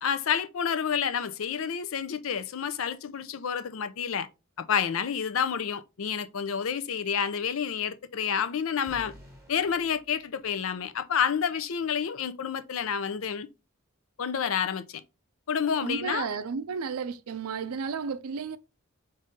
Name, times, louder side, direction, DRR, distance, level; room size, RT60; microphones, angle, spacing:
voice 1, 0.0-4.3 4.6-9.1 9.5-13.5 14.2-15.0 15.5-16.3, left 7 dB, 75° left, 0.5 m, -29 dB
sound 1, 8.9-11.0, equal, 15° right, 1.2 m, -51 dB
voice 2, 15.8-18.6, right 5 dB, 90° right, 0.5 m, -33 dB
5.3 x 2.7 x 3.5 m
head